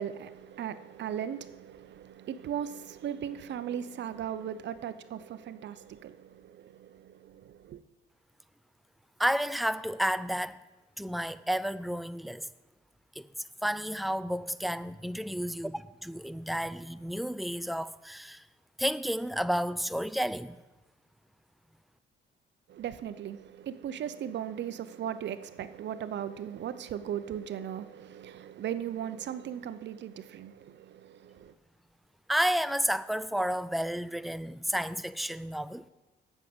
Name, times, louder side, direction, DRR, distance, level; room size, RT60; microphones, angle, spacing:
voice 1, 0.0-7.8 22.7-31.5, right 9 dB, 65° right, 0.7 m, -38 dB
voice 2, 9.2-10.6 11.0-12.5 13.2-13.3 13.6-18.4 18.8-20.6 32.3-35.9, equal, ahead, 0.4 m, -31 dB
8.5 x 6.4 x 7.9 m
cardioid pair, 90°, 20 cm